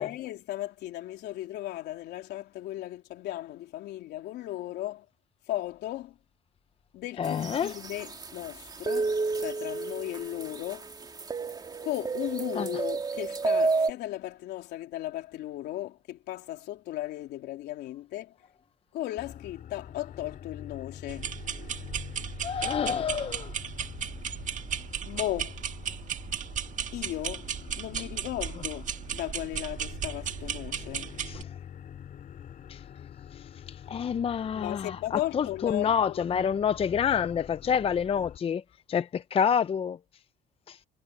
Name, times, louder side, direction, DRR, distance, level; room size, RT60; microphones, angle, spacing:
voice 1, 0.0-5.0 5.5-6.2 6.9-10.9 11.8-18.3 18.9-21.3 25.0-25.6 26.9-27.5 27.8-31.2 34.5-36.2, left 14 dB, 80° left, 3.4 m, -36 dB
voice 2, 7.2-7.7 12.6-12.7 22.4-23.6 31.3-31.5 32.7-32.8 33.3-33.4 33.7-38.6 38.9-40.0 40.7-40.8, left 7 dB, 35° left, 0.6 m, -28 dB
sound 1, 7.2-13.9, right 4 dB, 25° right, 2.6 m, -31 dB
sound 2, 19.2-38.4, left 9 dB, 55° left, 7.0 m, -46 dB
sound 3, 21.1-31.4, right 8 dB, 50° right, 1.6 m, -35 dB
cardioid pair, 110°, 17 cm